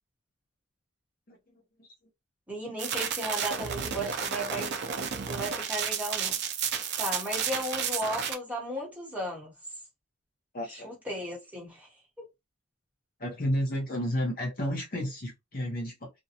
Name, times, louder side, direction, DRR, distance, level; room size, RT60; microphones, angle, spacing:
voice 1, 1.3-1.9 10.5-11.0 13.2-16.1, equal, 40° left, 0.8 m, -32 dB
voice 2, 2.5-4.8 5.3-6.4 7.0-9.5 10.7-11.9 12.2-12.3, equal, 5° right, 1.0 m, -35 dB
sound 1, 2.8-8.3, right 7 dB, 50° right, 0.5 m, -32 dB
2.6 x 2.2 x 2.8 m
head